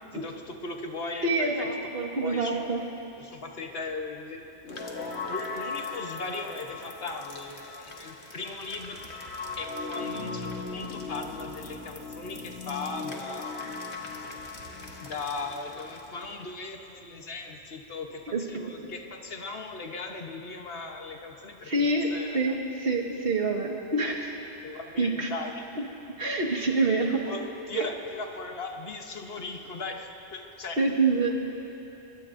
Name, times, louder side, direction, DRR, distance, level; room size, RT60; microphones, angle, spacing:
voice 1, 0.1-1.7 1.9-2.7 3.2-4.4 5.3-9.2 9.6-13.8 15.0-18.2 18.5-22.5 24.6-25.6 27.3-30.9, left 3 dB, 65° left, 3 dB, 1.3 m, -38 dB
voice 2, 1.2-2.9 18.3-18.4 21.6-24.4 25.0-25.3 25.8-25.9 26.2-27.3 27.7-27.9 30.8-31.6, right 3 dB, 60° right, 0 dB, 1.8 m, -27 dB
sound 1, 4.6-16.5, left 3 dB, 85° left, 1.7 m, -38 dB
24.5 x 22.0 x 2.6 m, 2.9 s
omnidirectional pair, 1.1 m